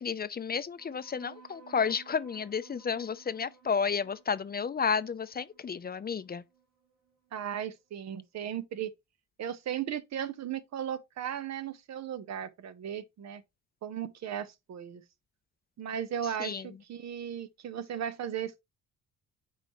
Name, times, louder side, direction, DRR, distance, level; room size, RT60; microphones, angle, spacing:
voice 1, 0.0-6.4 16.4-16.7, left 6 dB, 30° left, 0.6 m, -32 dB
sound 1, 0.8-7.7, right 7 dB, 85° right, 2.9 m, -58 dB
voice 2, 7.3-8.9 9.4-13.4 13.8-15.0 15.8-18.6, right 9 dB, 60° right, 1.0 m, -36 dB
9.0 x 4.7 x 3.1 m
cardioid pair, 90°, 30 cm